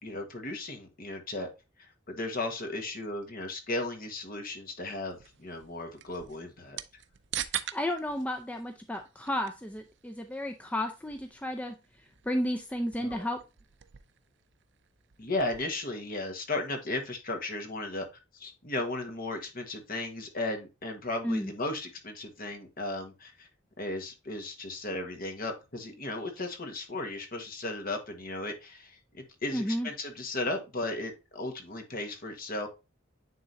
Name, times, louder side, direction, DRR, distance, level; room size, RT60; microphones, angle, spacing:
voice 1, 0.0-1.5 1.8-6.8 13.0-13.2 15.2-18.1 18.3-23.5 23.8-32.7, left 2 dB, 45° left, 5 dB, 1.5 m, -35 dB
sound 1, 5.1-15.8, right 11 dB, 60° right, 0.5 m, -44 dB
voice 2, 7.5-11.7 12.2-13.4 21.2-21.5 29.5-29.9, left 1 dB, 5° left, 4 dB, 0.5 m, -32 dB
9.5 x 3.7 x 2.7 m, 0.27 s
head